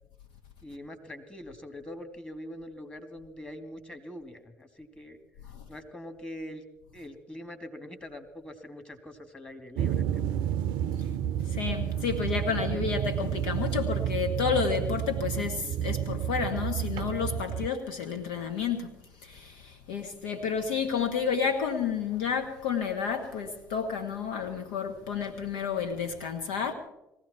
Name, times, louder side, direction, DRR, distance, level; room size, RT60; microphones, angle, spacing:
voice 1, 0.6-5.2 5.7-6.6 6.9-10.4, left 1 dB, 15° left, 2.6 m, -43 dB
sound 1, 9.8-17.7, right 10 dB, 70° right, 0.5 m, -30 dB
voice 2, 11.5-18.9 19.2-26.7, left 6 dB, 75° left, 1.5 m, -30 dB
21.0 x 15.5 x 4.5 m
hypercardioid pair, 55°, 8 cm